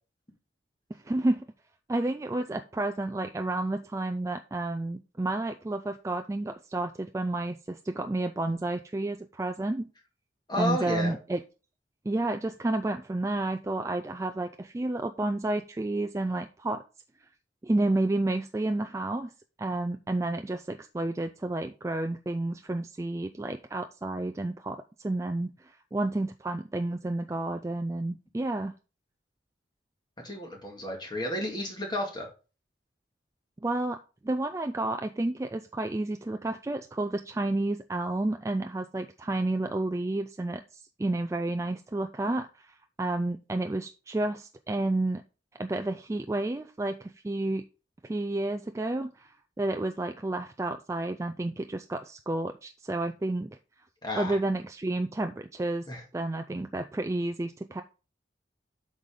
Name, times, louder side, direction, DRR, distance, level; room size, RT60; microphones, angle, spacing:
voice 1, 0.9-1.5 1.9-9.9 10.6-11.4 12.1-16.8 17.6-19.3 19.6-28.7 33.6-45.2 45.6-47.6 48.0-49.3 49.6-53.6 54.2-55.9 56.1-57.8, right 2 dB, 15° right, 6 dB, 0.3 m, -31 dB
voice 2, 10.5-11.1 30.2-32.3 54.0-54.4 55.9-56.0, left 1 dB, 25° left, 1 dB, 2.0 m, -32 dB
8.0 x 5.0 x 3.7 m, 0.34 s
head